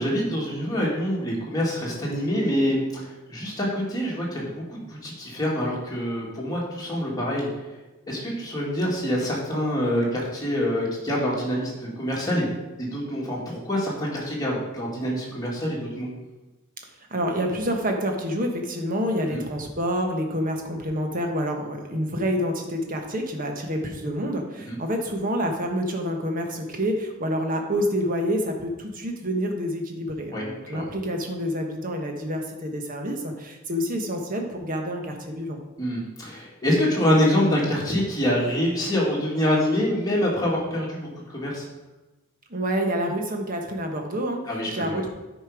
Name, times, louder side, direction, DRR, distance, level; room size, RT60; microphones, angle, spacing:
voice 1, 0.0-7.5 8.1-12.5 12.9-16.1 19.3-19.4 24.6-24.8 30.3-30.9 35.8-41.7 44.5-45.0, equal, 15° left, -4 dB, 2.2 m, -26 dB
voice 2, 17.1-35.6 42.5-44.4 44.7-45.1, equal, 40° right, 3 dB, 1.2 m, -28 dB
9.5 x 5.2 x 5.0 m, 1.1 s
head